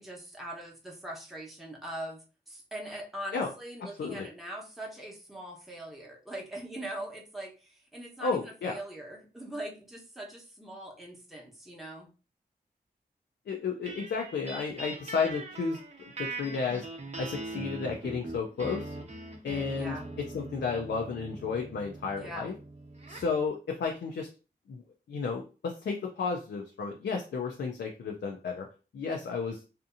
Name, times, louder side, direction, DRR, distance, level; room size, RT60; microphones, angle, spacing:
voice 1, 0.0-12.1 19.7-20.0 22.1-22.5, right 1 dB, ahead, -2 dB, 0.9 m, -42 dB
voice 2, 3.8-4.3 8.2-8.8 13.5-15.8 16.2-16.9 17.2-18.9 19.4-20.0 20.3-22.5 23.1-24.3 24.7-28.7 28.9-29.6, left 5 dB, 80° left, 1 dB, 0.4 m, -32 dB
sound 1, 13.9-23.4, right 2 dB, 40° right, 0.7 m, -42 dB
2.7 x 2.5 x 2.5 m, 0.34 s
cardioid pair, 60°, 18 cm